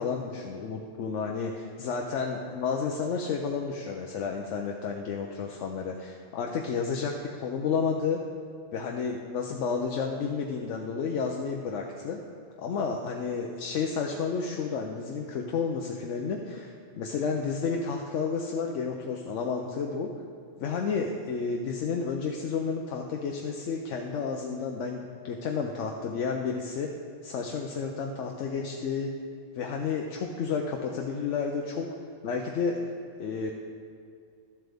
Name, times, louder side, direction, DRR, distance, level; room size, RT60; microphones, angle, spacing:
voice 1, 0.0-8.2 8.7-12.2 12.6-20.1 20.6-26.9 27.2-29.1 29.5-31.9 32.2-32.8 33.2-33.5, left 5 dB, 80° left, 1 dB, 1.0 m, -31 dB
13.0 x 7.6 x 3.5 m, 2.3 s
omnidirectional pair, 1.2 m